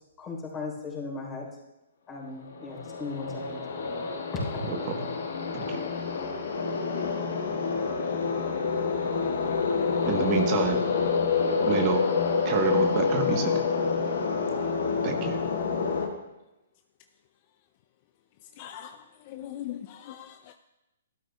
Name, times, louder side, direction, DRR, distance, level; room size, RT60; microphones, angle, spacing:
voice 1, 0.2-1.5 2.1-3.6 4.5-4.6, left 4 dB, 20° left, 3.8 m, -37 dB
sound 1, 2.5-16.1, left 5 dB, 70° left, 1.4 m, -28 dB
voice 2, 4.7-5.1 5.5-5.8 10.0-10.8 11.6-12.0 12.4-13.5 15.0-15.4, right 6 dB, 35° right, 1.1 m, -28 dB
voice 3, 18.6-19.0 19.3-20.5, left 12 dB, 40° left, 0.4 m, -40 dB
12.5 x 12.0 x 2.3 m
hypercardioid pair, 130°, 0 cm